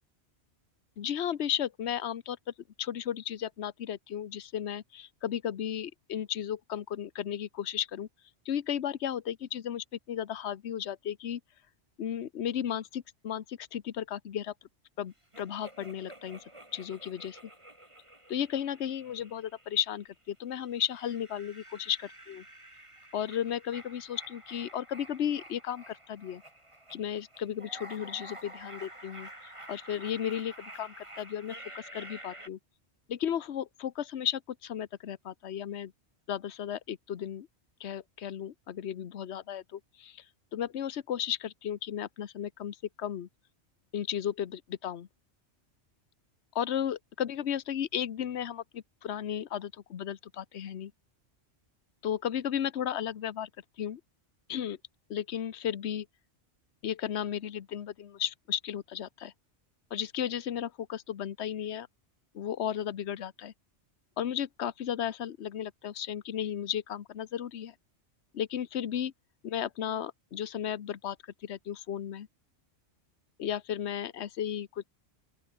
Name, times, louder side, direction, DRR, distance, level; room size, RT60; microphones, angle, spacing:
voice 1, 1.0-2.4 2.8-8.1 8.4-11.4 12.0-14.5 15.0-16.4 16.7-17.4 18.3-22.4 23.1-26.4 26.9-32.6 33.1-35.9 36.3-37.5 37.8-40.2 40.5-43.3 43.9-45.1 46.5-50.9 52.0-53.5 53.8-54.0 54.5-54.8 55.1-56.1 56.8-59.3 59.9-61.9 62.3-63.5 64.2-67.7 68.3-69.1 69.4-71.2 71.4-72.3 73.4-74.9, left 9 dB, 70° left, 1.2 m, -34 dB
sound 1, 15.3-20.1 20.6-32.5, right 1 dB, 25° right, 4.0 m, -50 dB
open air
omnidirectional pair, 1.2 m